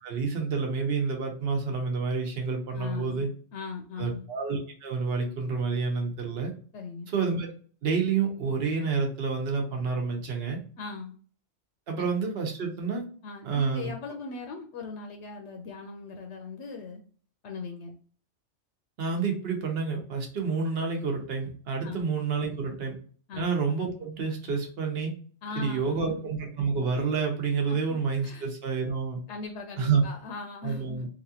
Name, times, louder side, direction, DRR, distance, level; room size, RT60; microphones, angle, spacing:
voice 1, 0.0-3.3 4.0-6.5 7.1-7.5 7.8-10.6 11.9-13.0 13.4-13.9 19.0-23.0 23.4-25.1 25.6-29.2 29.8-30.0 30.6-31.1, right 5 dB, 60° right, 2 dB, 1.0 m, -29 dB
voice 2, 2.7-4.2 6.7-7.1 10.8-11.1 13.2-17.0 17.4-17.9 21.8-22.0 23.3-23.4 25.4-26.3 27.7-28.5 29.3-31.0, left 4 dB, 75° left, 4 dB, 0.8 m, -39 dB
3.0 x 2.5 x 2.8 m, 0.43 s
omnidirectional pair, 1.2 m